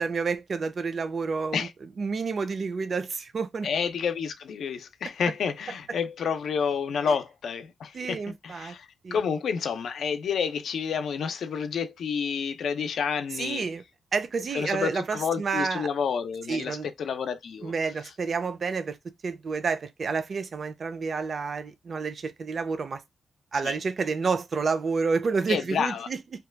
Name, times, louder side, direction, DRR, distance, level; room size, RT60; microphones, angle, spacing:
voice 1, 0.0-1.7 2.0-3.7 7.9-8.7 9.0-9.2 13.3-13.8 14.1-15.9 16.5-16.9 17.6-23.0 23.5-26.2, right 5 dB, 50° right, 0.4 m, -29 dB
voice 2, 3.6-13.7 14.5-17.7 23.6-23.8 25.5-26.1, left 6 dB, 85° left, 0.5 m, -29 dB
2.9 x 2.2 x 3.3 m
wide cardioid pair, 135°, 0 cm